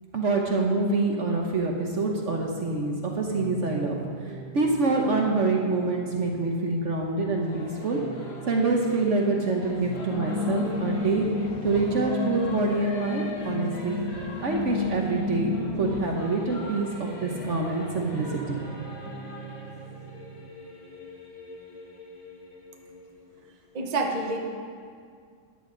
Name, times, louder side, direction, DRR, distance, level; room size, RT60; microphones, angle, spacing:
voice 1, 0.1-4.0 4.5-8.0 8.5-11.3 11.6-14.1 14.4-18.6, right 3 dB, 55° right, 0 dB, 1.2 m, -26 dB
sound 1, 1.9-20.5, right 7 dB, 90° right, 1.4 m, -43 dB
Singing / Musical instrument, 7.4-23.7, left 2 dB, 40° left, 1.5 m, -43 dB
sound 2, 10.1-16.0, left 4 dB, 70° left, 1.8 m, -31 dB
voice 2, 23.7-24.4, right 3 dB, 30° right, 1 dB, 0.9 m, -27 dB
13.5 x 9.9 x 3.9 m, 2.2 s
omnidirectional pair, 1.7 m